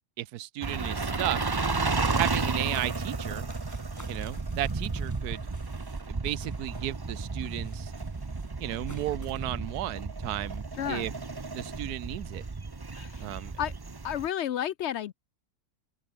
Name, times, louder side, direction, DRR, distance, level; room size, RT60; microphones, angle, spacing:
voice 1, 0.2-1.4 2.1-3.5 4.1-5.4 6.1-7.9 8.6-11.1 11.5-12.4 13.2-13.5, right 14 dB, 85° right, 1.2 m, -34 dB
sound 1, 0.6-14.3, right 3 dB, 25° right, 0.6 m, -33 dB
sound 2, 2.0-6.9 7.2-9.5, left 1 dB, 10° left, 3.2 m, -53 dB
voice 2, 10.8-11.1 13.0-13.2 13.6-13.7 14.0-15.1, left 10 dB, 65° left, 0.7 m, -31 dB
omnidirectional pair, 1.6 m